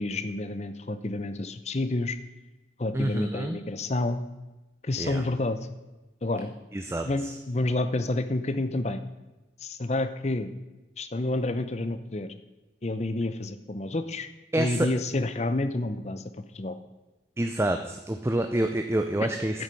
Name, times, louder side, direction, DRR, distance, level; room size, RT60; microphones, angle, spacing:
voice 1, 0.0-2.2 2.8-4.2 4.8-5.6 6.2-6.5 7.0-9.0 9.6-10.5 11.0-12.3 12.8-14.3 14.6-16.2 16.5-16.7 19.2-19.3 19.5-19.6, left 2 dB, 35° left, 11 dB, 0.7 m, -29 dB
voice 2, 2.9-3.6 5.0-5.2 6.7-7.4 14.5-14.9 17.4-19.6, right 1 dB, 15° right, 6 dB, 0.5 m, -28 dB
10.0 x 8.0 x 5.3 m, 1.1 s
head